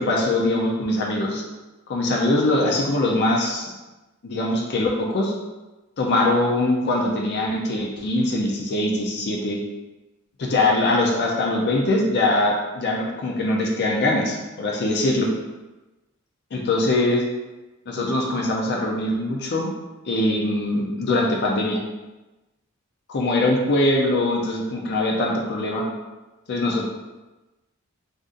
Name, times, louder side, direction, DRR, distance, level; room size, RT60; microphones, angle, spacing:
voice 1, 0.0-1.4 1.9-3.7 4.2-5.3 6.0-9.6 10.4-15.3 16.5-17.2 17.9-19.7 20.0-21.8 23.1-25.8 26.5-26.9, left 2 dB, 50° left, -1 dB, 0.5 m, -22 dB
2.6 x 2.5 x 3.7 m, 1.1 s
head